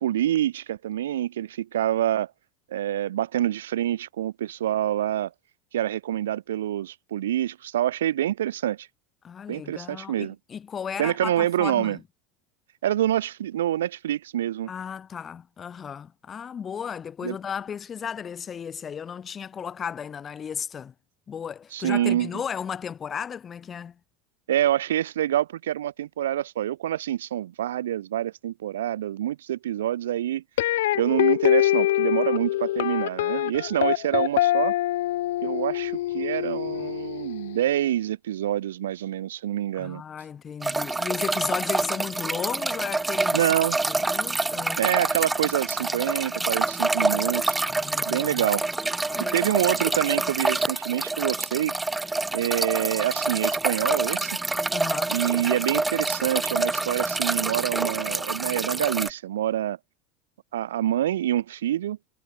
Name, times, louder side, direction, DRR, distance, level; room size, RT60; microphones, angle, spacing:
voice 1, 0.0-2.3 2.7-5.3 5.7-8.9 9.5-10.4 11.0-12.0 12.8-14.7 17.2-17.4 21.7-22.3 24.5-30.4 30.9-34.7 35.4-40.0 43.3-43.8 44.8-47.6 48.1-48.6 49.3-51.7 52.3-54.4 55.1-59.8 60.5-62.0, right 12 dB, 70° right, 0.8 m, -26 dB
voice 2, 9.2-12.0 14.7-20.9 21.3-23.9 39.7-43.5 43.9-44.8 47.6-48.4 49.0-49.7 54.7-55.2, left 7 dB, 30° left, 3.3 m, -35 dB
sound 1, 30.6-37.7, left 15 dB, 70° left, 2.5 m, -24 dB
sound 2, 40.6-59.1, right 2 dB, 10° right, 0.9 m, -27 dB
figure-of-eight pair, 75°, 0 cm